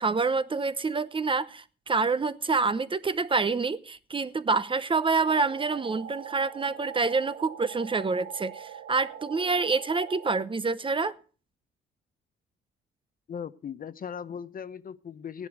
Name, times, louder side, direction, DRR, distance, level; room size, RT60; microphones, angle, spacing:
voice 1, 0.0-11.2, right 4 dB, 25° right, 0.8 m, -27 dB
sound 1, 5.2-10.4, right 9 dB, 70° right, 1.1 m, -42 dB
voice 2, 13.3-15.5, left 7 dB, 45° left, 0.8 m, -38 dB
15.0 x 11.0 x 4.9 m
cardioid pair, 90°, 20 cm